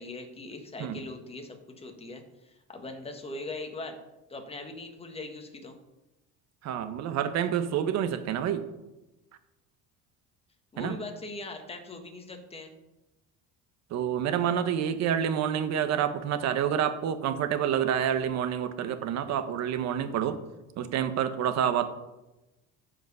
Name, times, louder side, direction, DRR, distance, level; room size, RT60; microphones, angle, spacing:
voice 1, 0.0-3.9 4.3-5.7 10.7-12.7, left 2 dB, 20° left, 4 dB, 1.7 m, -40 dB
voice 2, 6.6-8.6 10.8-11.0 13.9-20.4 20.8-21.9, right 9 dB, 55° right, 10 dB, 1.1 m, -28 dB
14.0 x 5.1 x 5.5 m, 1.0 s
cardioid pair, 125°, 32 cm